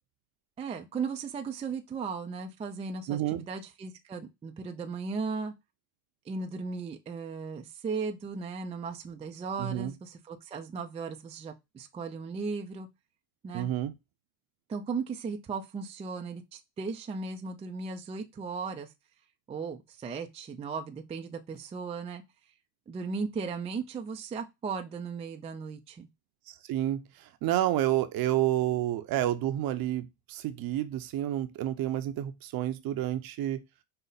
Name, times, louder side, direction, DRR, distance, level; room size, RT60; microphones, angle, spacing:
voice 1, 0.6-5.5 6.3-12.9 13.4-13.7 14.7-18.9 19.5-22.2 22.9-26.1, right 5 dB, 15° right, 0.4 m, -36 dB
voice 2, 3.1-3.4 9.6-9.9 13.5-13.9 26.5-33.6, right 13 dB, 45° right, 0.7 m, -30 dB
5.4 x 2.1 x 3.9 m
supercardioid pair, 100°, 49 cm